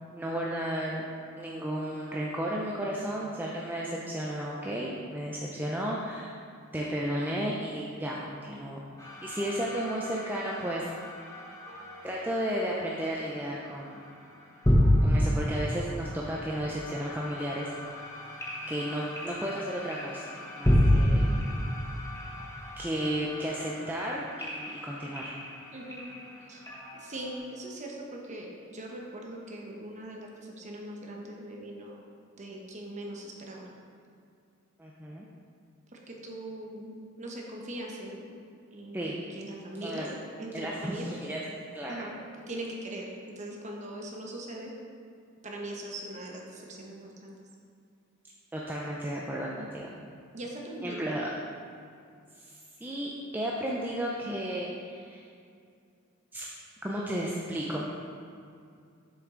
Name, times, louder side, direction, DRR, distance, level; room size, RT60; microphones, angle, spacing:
voice 1, 0.1-1.1 1.4-6.3 6.7-10.9 12.0-14.0 15.0-17.7 18.7-21.3 22.8-25.3 34.8-35.3 38.9-39.2 39.8-40.1 40.5-41.4 41.7-42.1 48.5-49.9 50.8-51.3 52.4-55.2 56.3-56.5 56.8-57.9, right 1 dB, 10° right, -4 dB, 0.4 m, -33 dB
sound 1, 9.0-27.4, equal, 15° left, 0.9 m, -31 dB
voice 2, 25.7-26.1 26.5-26.6 26.9-32.1 32.4-33.7 35.9-38.3 38.7-41.1 41.9-42.2 42.5-43.1 43.3-44.7 45.4-47.4 50.3-51.3, right 1 dB, 35° right, -1 dB, 0.9 m, -41 dB
7.2 x 5.8 x 3.7 m, 2.4 s
head